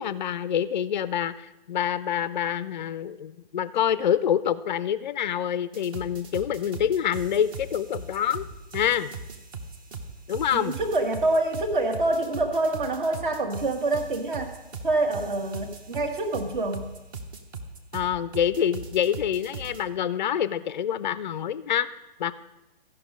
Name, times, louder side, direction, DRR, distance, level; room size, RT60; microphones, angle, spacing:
voice 1, 0.0-8.4 8.7-9.1 10.3-10.7 17.9-21.9 22.2-22.3, left 9 dB, 50° left, 15 dB, 0.4 m, -26 dB
sound 1, 5.7-19.8, right 3 dB, 20° right, 0.7 m, -40 dB
voice 2, 10.5-14.5 14.8-16.9, right 2 dB, 55° right, 6 dB, 1.6 m, -26 dB
14.5 x 5.4 x 5.2 m, 0.97 s
figure-of-eight pair, 130°, 31 cm